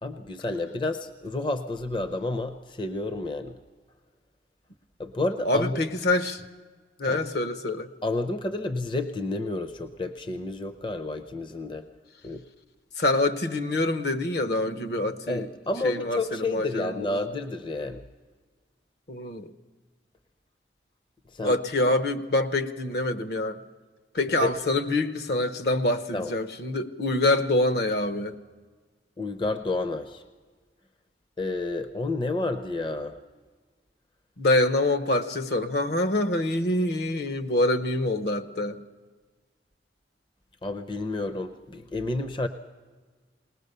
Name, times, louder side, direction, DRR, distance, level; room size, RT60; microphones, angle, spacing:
voice 1, 0.0-3.6 5.0-5.8 7.0-7.3 8.0-11.8 12.2-12.4 15.3-18.0 21.3-21.6 24.4-24.5 26.1-26.3 29.2-30.2 31.4-33.2 40.6-42.5, left 2 dB, 25° left, 8 dB, 0.6 m, -30 dB
voice 2, 5.4-6.4 7.0-7.9 13.0-15.5 15.8-17.2 19.1-19.5 21.4-23.6 24.1-28.4 34.4-38.8, left 2 dB, 65° left, 9 dB, 0.9 m, -25 dB
20.0 x 19.5 x 6.7 m, 1.4 s
head